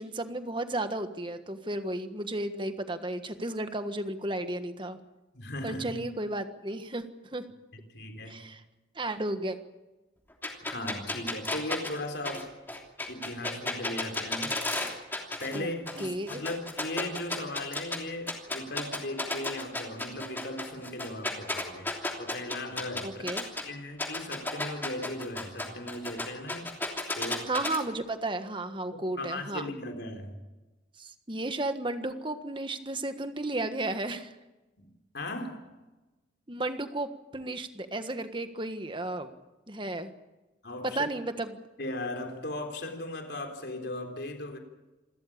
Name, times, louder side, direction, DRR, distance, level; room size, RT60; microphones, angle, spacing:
voice 1, 0.0-5.0 5.6-7.0 7.3-7.4 8.3-8.6 8.9-9.6 15.5-15.7 16.0-16.4 23.0-23.4 27.5-29.7 31.0-34.3 36.5-39.3 39.7-40.1 40.8-41.6, right 2 dB, 25° right, 9 dB, 1.5 m, -33 dB
voice 2, 5.3-6.1 7.7-8.4 10.6-12.6 13.1-14.7 15.4-21.9 22.2-23.3 23.6-26.7 27.2-27.6 28.9-30.4 34.8-34.9 35.1-35.7 40.6-41.0 41.8-44.6, left 1 dB, 65° left, 4 dB, 3.8 m, -37 dB
sound 1, 10.4-15.6 15.9-18.0 18.3-23.6 24.0-27.8, left 2 dB, 10° left, 3.0 m, -33 dB
27.5 x 13.5 x 8.8 m, 1.1 s
head